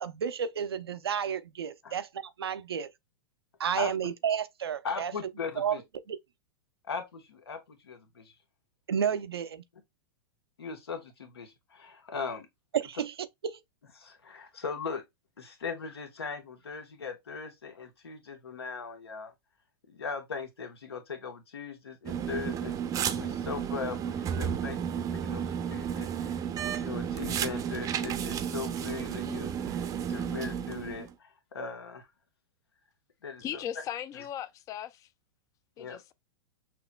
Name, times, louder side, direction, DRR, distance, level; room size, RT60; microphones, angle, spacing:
voice 1, 0.0-2.9 3.6-5.1 5.6-5.8 6.1-6.2 8.9-9.6 12.8-13.1 13.4-13.6, right 8 dB, 80° right, 0.5 m, -31 dB
voice 2, 4.8-5.8 6.9-8.3 10.6-12.5 14.0-15.0 15.4-19.3 19.9-22.7 23.1-32.1 33.2-33.6 34.1-34.3 35.8-36.0, left 5 dB, 80° left, 1.2 m, -39 dB
sound 1, 22.1-31.1, right 8 dB, 25° right, 0.6 m, -32 dB
voice 3, 33.4-34.9 35.8-36.1, left 10 dB, 25° left, 0.4 m, -37 dB
6.0 x 3.0 x 2.2 m
hypercardioid pair, 110°, 13 cm